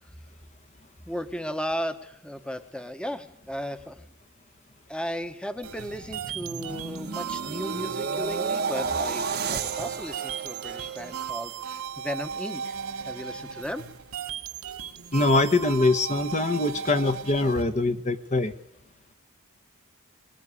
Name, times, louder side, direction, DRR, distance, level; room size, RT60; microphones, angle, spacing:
voice 1, 1.1-4.1 4.9-12.8 13.0-13.8, equal, 5° left, 9 dB, 1.1 m, -35 dB
sound 1, 5.6-11.8 12.3-12.5, right 5 dB, 45° right, 1.0 m, -33 dB
sound 2, 5.6-17.6, right 7 dB, 75° right, 1.2 m, -36 dB
voice 2, 15.1-18.5, left 2 dB, 35° left, 8 dB, 1.0 m, -23 dB
21.0 x 18.5 x 9.8 m, 0.73 s
head